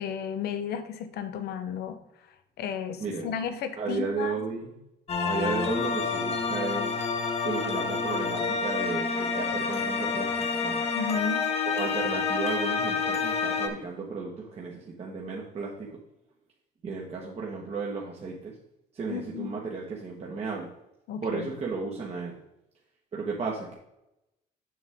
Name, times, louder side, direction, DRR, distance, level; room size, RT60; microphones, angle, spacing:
voice 1, 0.0-2.0 2.6-4.3 10.9-11.4 19.1-19.5 21.1-21.5, left 7 dB, 70° left, 9 dB, 1.0 m, -33 dB
voice 2, 3.8-4.8 5.2-7.0 7.4-10.9 11.7-16.0 16.8-18.5 18.9-20.7 21.2-22.4 23.1-23.7, right 4 dB, 40° right, -2 dB, 1.4 m, -34 dB
sound 1, 5.1-13.7, left 5 dB, 40° left, 1.2 m, -28 dB
7.2 x 6.7 x 3.7 m, 0.87 s
cardioid pair, 110°, 17 cm